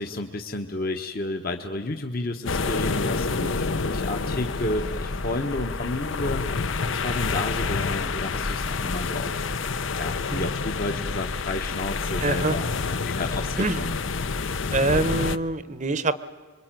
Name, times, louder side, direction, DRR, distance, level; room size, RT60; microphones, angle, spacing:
voice 1, 0.0-9.5 10.0-14.1, left 2 dB, 45° left, 5 dB, 1.2 m, -31 dB
sound 1, 2.5-15.4, left 4 dB, 65° left, 0.8 m, -28 dB
voice 2, 12.2-12.5 13.6-13.8 14.7-16.2, right 2 dB, 35° right, 14 dB, 0.9 m, -25 dB
26.0 x 23.0 x 9.1 m, 1.4 s
head